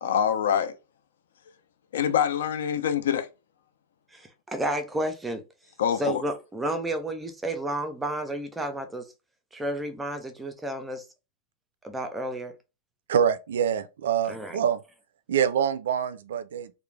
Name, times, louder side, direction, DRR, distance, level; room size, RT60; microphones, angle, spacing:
voice 1, 0.0-0.7 1.9-3.3 5.8-6.2, left 8 dB, 85° left, 0.4 m, -25 dB
voice 2, 4.1-5.4 6.0-9.1 9.5-11.1 11.8-12.5 14.3-14.6, right 1 dB, 5° right, 0.3 m, -31 dB
voice 3, 13.1-14.8 15.3-16.7, right 8 dB, 90° right, 0.3 m, -25 dB
2.4 x 2.0 x 3.2 m
supercardioid pair, 175°, 0 cm